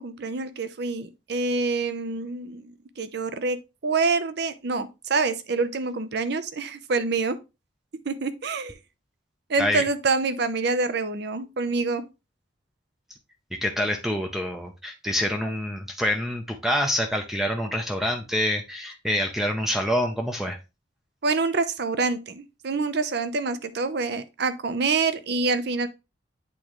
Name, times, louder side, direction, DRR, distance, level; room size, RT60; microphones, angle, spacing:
voice 1, 0.0-7.4 8.1-8.7 9.5-12.0 21.2-25.9, right 4 dB, 60° right, 0.6 m, -26 dB
voice 2, 13.5-20.6, equal, ahead, 0.5 m, -26 dB
8.4 x 3.7 x 3.0 m
head